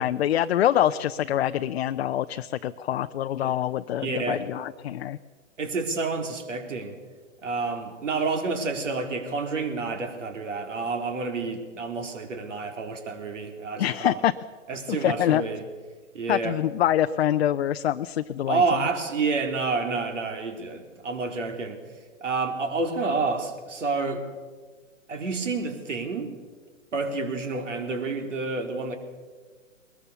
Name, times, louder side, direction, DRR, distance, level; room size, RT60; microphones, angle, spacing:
voice 1, 0.0-5.2 13.8-14.4 14.9-15.4 16.3-18.8, left 11 dB, 55° left, 8 dB, 0.7 m, -25 dB
voice 2, 4.0-4.5 5.6-7.0 7.4-14.2 14.7-15.6 16.1-16.6 18.5-21.8 22.2-24.2 25.1-26.3 26.9-29.0, right 4 dB, 75° right, 5 dB, 4.1 m, -29 dB
21.5 x 20.5 x 7.0 m, 1.4 s
hypercardioid pair, 135°, 37 cm